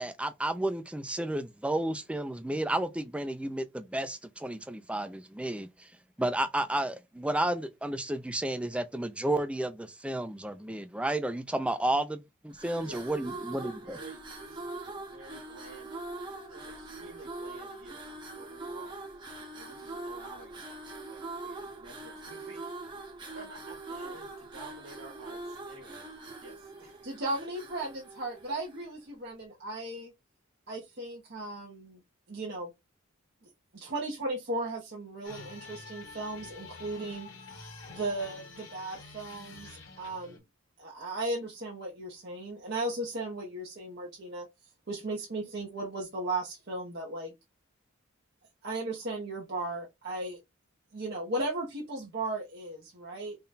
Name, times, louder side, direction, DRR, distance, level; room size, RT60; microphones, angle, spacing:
voice 1, 0.0-5.9 6.2-14.0, right 1 dB, 5° right, 0.3 m, -32 dB
sound 1, 12.5-28.9, right 2 dB, 20° right, 0.8 m, -43 dB
voice 2, 12.7-16.0 16.5-19.0 19.5-20.6 21.1-22.8 23.3-27.0, right 3 dB, 70° right, 1.4 m, -51 dB
voice 3, 27.0-30.1 30.7-32.0 32.3-32.7 33.7-37.3 37.9-40.4 40.8-44.5 44.9-47.3 48.6-50.4 50.9-53.4, right 2 dB, 50° right, 0.8 m, -36 dB
sound 2, 35.2-40.4, left 4 dB, 60° left, 1.4 m, -47 dB
3.7 x 2.2 x 3.9 m
head